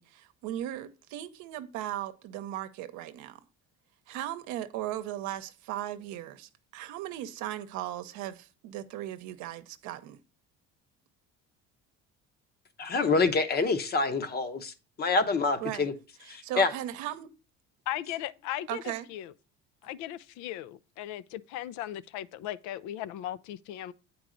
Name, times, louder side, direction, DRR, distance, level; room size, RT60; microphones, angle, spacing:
voice 1, 0.0-3.4 4.1-10.2 15.6-15.9 16.2-17.3 18.7-19.1, right 13 dB, 80° right, 0.8 m, -37 dB
voice 2, 12.8-14.7 15.0-15.9 16.3-16.7, left 4 dB, 35° left, 0.8 m, -26 dB
voice 3, 17.9-18.8 19.1-19.3 19.8-23.9, left 13 dB, 80° left, 0.5 m, -37 dB
8.3 x 4.6 x 3.8 m
cardioid pair, 120°, 29 cm